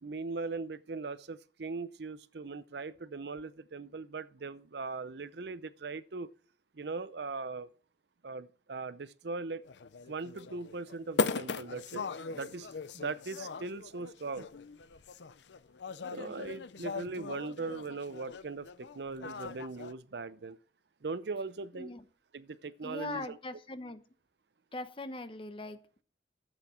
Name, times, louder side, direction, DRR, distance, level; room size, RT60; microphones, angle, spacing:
voice 1, 0.0-6.3 6.7-7.7 8.2-9.6 10.1-12.0 12.3-14.5 16.1-20.6 21.0-21.9 22.3-23.4, right 3 dB, 70° right, 0.6 m, -40 dB
sound 1, 9.6-19.9, left 4 dB, 80° left, 0.6 m, -39 dB
voice 2, 16.1-16.6 21.7-22.0 22.8-24.0 24.7-26.0, left 2 dB, 30° left, 0.9 m, -42 dB
13.0 x 8.0 x 4.3 m
head